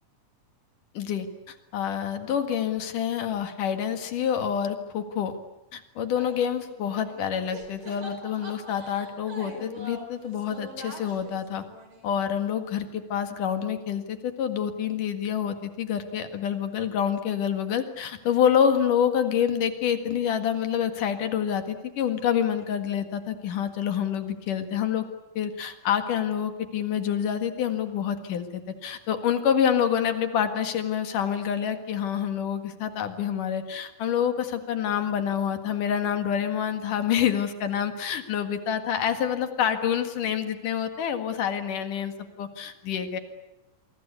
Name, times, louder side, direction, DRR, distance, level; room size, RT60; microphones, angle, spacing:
voice 1, 0.9-5.4 5.7-11.6 12.0-25.1 25.3-43.2, left 8 dB, 75° left, 8 dB, 3.4 m, -27 dB
sound 1, 6.1-7.3 7.5-12.2, right 1 dB, 40° right, 5.0 m, -44 dB
28.5 x 23.0 x 8.4 m, 0.96 s
omnidirectional pair, 3.7 m